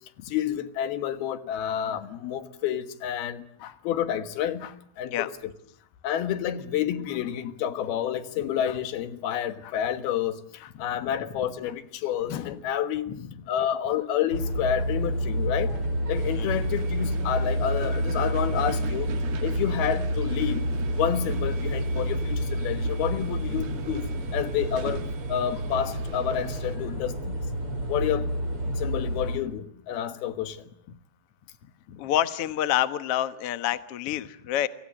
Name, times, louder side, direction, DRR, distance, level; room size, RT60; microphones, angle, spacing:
voice 1, 0.2-5.1 5.4-5.5 6.0-13.1 13.5-15.8 16.1-19.1 19.4-20.7 20.9-25.0 25.3-27.4 27.9-28.3 28.7-30.6, left 10 dB, 85° left, 3.4 m, -29 dB
sound 1, 14.3-29.4, equal, 35° right, 6.1 m, -29 dB
sound 2, 16.1-26.8, right 6 dB, 85° right, 4.1 m, -41 dB
voice 2, 31.9-34.7, left 12 dB, 60° left, 1.6 m, -28 dB
29.0 x 25.0 x 7.6 m
omnidirectional pair, 4.3 m